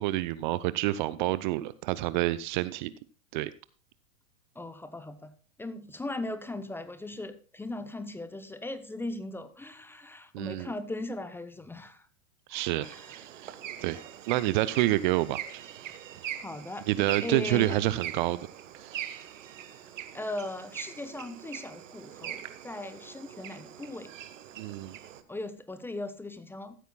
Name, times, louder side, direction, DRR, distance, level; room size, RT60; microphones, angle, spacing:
voice 1, 0.0-2.9 3.3-3.5 10.3-10.7 12.5-14.0 14.3-15.6 16.9-18.5 18.8-18.9 24.6-25.0, right 16 dB, 35° right, 17 dB, 0.5 m, -28 dB
voice 2, 4.6-5.3 5.6-12.1 12.5-13.2 13.4-13.5 16.4-16.9 17.2-17.9 20.1-24.1 25.3-26.8, left 2 dB, 5° left, 11 dB, 0.6 m, -38 dB
sound 1, 12.8-25.2, right 10 dB, 60° right, 1.4 m, -42 dB
14.5 x 12.5 x 2.3 m, 0.36 s
figure-of-eight pair, 105°, 42 cm